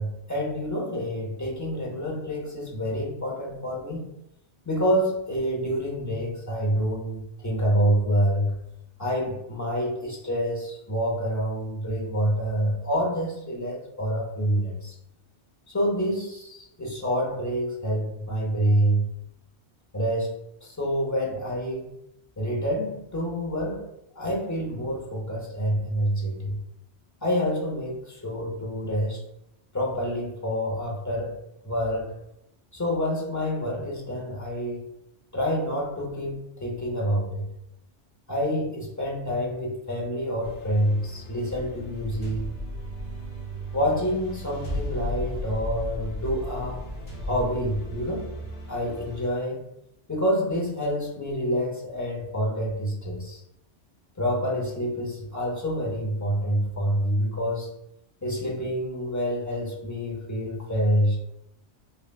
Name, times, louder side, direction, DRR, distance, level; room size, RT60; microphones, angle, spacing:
voice 1, 0.0-4.1 4.6-8.6 9.0-14.9 15.7-19.2 19.9-20.3 20.6-22.0 22.4-23.8 24.2-26.6 27.2-29.2 29.7-31.4 31.6-32.1 32.7-34.9 35.3-37.5 38.3-42.5 43.7-46.8 47.2-48.3 48.7-49.6 50.1-53.4 54.2-57.7 58.2-61.2, equal, 20° left, -1 dB, 0.5 m, -27 dB
sound 1, 40.4-49.3, equal, 85° left, 1.7 m, -35 dB
5.2 x 2.2 x 2.3 m, 0.81 s
omnidirectional pair, 1.1 m